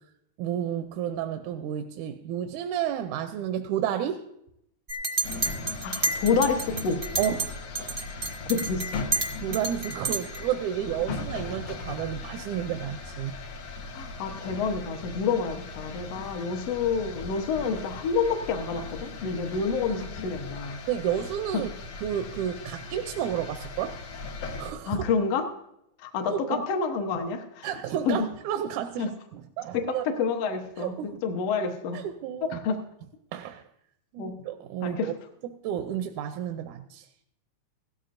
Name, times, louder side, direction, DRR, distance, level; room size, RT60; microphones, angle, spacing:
voice 1, 0.4-4.3 7.2-7.5 9.4-13.3 20.9-21.7 22.0-24.0 24.6-25.1 26.3-26.7 27.6-30.0 30.8-31.2 31.9-32.6 33.3-33.6 34.1-35.1 35.6-37.1, right 10 dB, 85° right, 7 dB, 2.0 m, -31 dB
Chink clink, 4.9-7.5 7.7-10.4, right 2 dB, 50° right, 0.6 m, -30 dB
sound 1, 5.2-24.7, left 3 dB, 85° left, 2.9 m, -38 dB
voice 2, 5.8-7.0 8.5-8.9 11.1-11.2 13.9-20.8 21.5-21.6 24.9-25.5 26.0-27.7 28.1-28.3 29.0-29.1 29.7-32.0 32.5-32.8 34.2-34.3 34.8-35.1, left 5 dB, 65° left, 4 dB, 1.9 m, -28 dB
16.5 x 13.5 x 2.6 m, 0.78 s
omnidirectional pair, 3.4 m